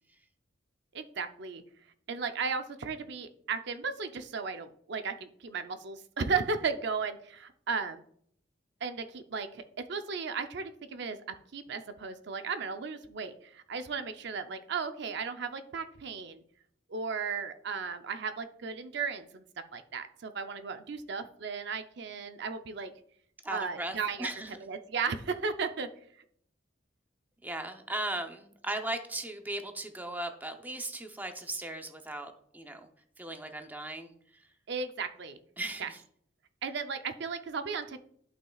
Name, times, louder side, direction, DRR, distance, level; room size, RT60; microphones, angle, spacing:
voice 1, 0.9-1.6 2.1-8.0 8.8-9.6 9.9-11.2 11.5-16.4 16.9-19.4 19.7-22.9 23.5-24.3 24.6-25.9 34.7-35.4 35.8-35.9 36.6-38.0, right 5 dB, 65° right, 9 dB, 0.6 m, -35 dB
voice 2, 23.4-24.5 27.4-32.9 33.2-34.4 35.6-36.0, right 1 dB, 10° right, 5 dB, 0.6 m, -37 dB
12.0 x 5.6 x 2.3 m, 0.64 s
head